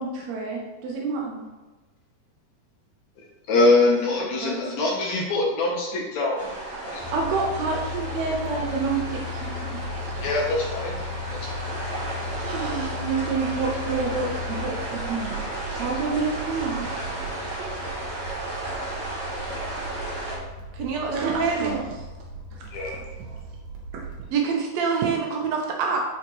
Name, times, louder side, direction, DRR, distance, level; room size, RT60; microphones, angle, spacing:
voice 1, 0.0-1.4 7.0-9.8 12.4-17.0 19.8-20.0 21.1-21.9 22.5-22.6 22.9-23.4 25.0-25.1, right 4 dB, 75° right, -1 dB, 1.7 m, -29 dB
voice 2, 3.5-6.5 6.9-7.0 10.2-11.0 11.4-11.7 22.7-23.0, left 2 dB, 70° left, -2 dB, 1.9 m, -23 dB
voice 3, 4.1-4.6 20.7-21.8 24.3-26.0, right 5 dB, 90° right, 1 dB, 1.5 m, -26 dB
sound 1, 6.4-20.4, right 2 dB, 45° right, 2.2 m, -34 dB
sound 2, 7.0-24.3, left 3 dB, 60° right, 1.7 m, -36 dB
9.7 x 4.1 x 3.0 m, 1.2 s
omnidirectional pair, 4.0 m